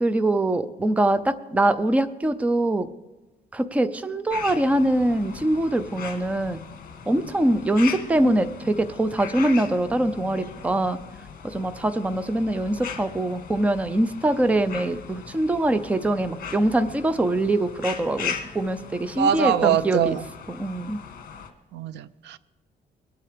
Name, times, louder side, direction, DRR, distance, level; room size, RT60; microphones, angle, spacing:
voice 1, 0.0-2.9 3.5-6.6 7.1-11.0 11.4-20.2 20.5-21.0, right 1 dB, 10° right, 11 dB, 0.5 m, -23 dB
sound 1, 4.3-21.5, left 7 dB, 50° left, 1.5 m, -39 dB
voice 2, 19.2-20.2 21.7-22.4, right 9 dB, 80° right, 16 dB, 0.6 m, -23 dB
22.5 x 8.6 x 5.0 m, 1.1 s
cardioid pair, 180°, 18 cm